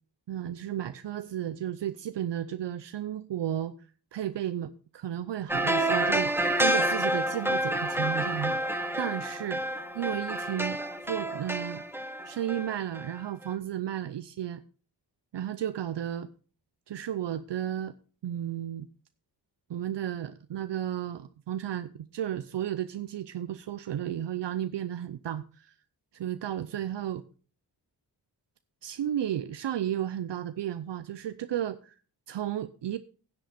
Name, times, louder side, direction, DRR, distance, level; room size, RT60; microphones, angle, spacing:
voice 1, 0.3-3.7 4.1-8.6 9.0-9.6 10.0-10.8 11.0-11.8 12.2-14.6 15.3-16.3 16.9-17.9 18.2-18.9 19.7-25.7 26.1-27.2 28.8-31.9 32.3-33.0, right 11 dB, 70° right, 12 dB, 0.6 m, -33 dB
sound 1, 5.5-13.1 13.4-13.5, right 1 dB, 5° right, 1.6 m, -29 dB
10.0 x 7.9 x 5.0 m, 0.39 s
cardioid pair, 45°, 44 cm